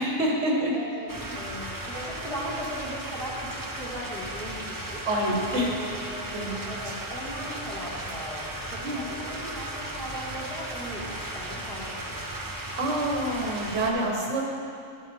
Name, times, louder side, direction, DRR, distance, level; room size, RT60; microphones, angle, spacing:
voice 1, 0.0-0.7 5.0-5.7 6.3-6.5 6.8-6.9 8.8-9.1 12.8-14.4, right 1 dB, 55° right, -2 dB, 1.4 m, -27 dB
voice 2, 0.7-5.0 5.5-12.4, equal, ahead, -8 dB, 1.9 m, -38 dB
sound 1, 1.1-13.9, right 1 dB, 25° right, 0.5 m, -36 dB
12.0 x 7.6 x 3.6 m, 2.4 s
omnidirectional pair, 1.4 m